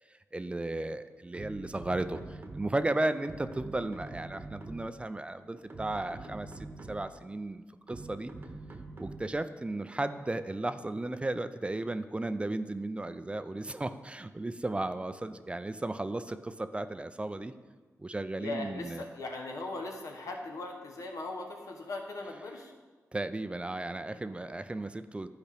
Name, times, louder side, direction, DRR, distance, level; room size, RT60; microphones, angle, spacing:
voice 1, 0.3-8.3 9.0-17.5 18.0-19.0 23.1-25.3, right 2 dB, 20° right, 11 dB, 0.3 m, -35 dB
sound 1, 1.3-2.9 3.2-5.0 5.6-7.2 7.9-9.4, right 2 dB, 40° right, 0.9 m, -45 dB
voice 2, 18.4-22.7, left 2 dB, 80° left, 2 dB, 1.0 m, -39 dB
10.5 x 4.9 x 3.4 m, 1.4 s
cardioid pair, 75°, 6 cm